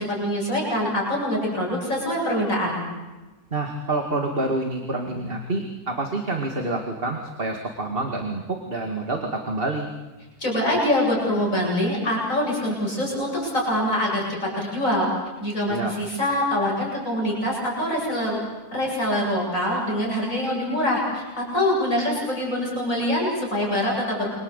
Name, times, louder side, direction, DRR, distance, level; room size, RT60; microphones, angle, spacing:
voice 1, 0.0-2.8 10.4-15.1 15.4-18.4 18.7-24.3, left 1 dB, 60° left, -3 dB, 8.5 m, -24 dB
voice 2, 3.5-9.9 15.7-15.9, right 2 dB, 35° right, 3 dB, 2.4 m, -27 dB
28.5 x 25.5 x 8.3 m, 1.2 s
omnidirectional pair, 1.6 m